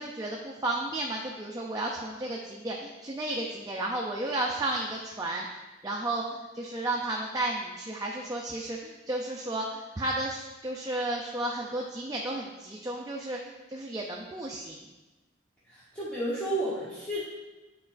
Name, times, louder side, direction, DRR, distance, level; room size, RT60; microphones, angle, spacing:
voice 1, 0.0-5.5 5.8-14.8, right 2 dB, 15° right, -1 dB, 0.4 m, -33 dB
voice 2, 15.7-17.2, right 1 dB, 10° left, -10 dB, 1.0 m, -32 dB
8.6 x 4.7 x 2.5 m, 1.1 s
head